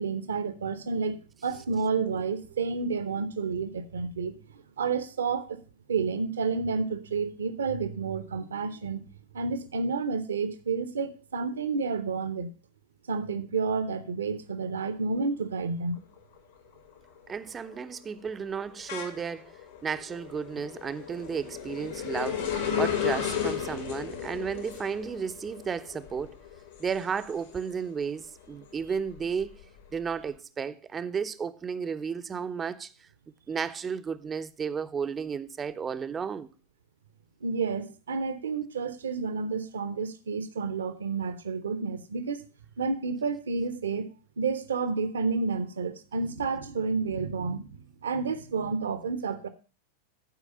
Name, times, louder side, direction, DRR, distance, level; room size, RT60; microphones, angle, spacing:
voice 1, 0.0-4.3 4.8-5.6 5.9-9.0 9.3-12.5 13.1-16.0 37.4-42.4 42.8-44.1 44.4-47.6 48.0-49.5, right 4 dB, 70° right, 0.9 m, -30 dB
sound 1, 16.0-16.4 16.8-28.0 28.4-30.1, left 8 dB, 60° left, 1.9 m, -35 dB
voice 2, 17.3-19.6 19.8-26.4 26.8-29.5 29.9-32.9 33.5-36.5, right 6 dB, 20° right, 0.6 m, -33 dB
12.0 x 4.8 x 5.3 m
figure-of-eight pair, 90°, 0 cm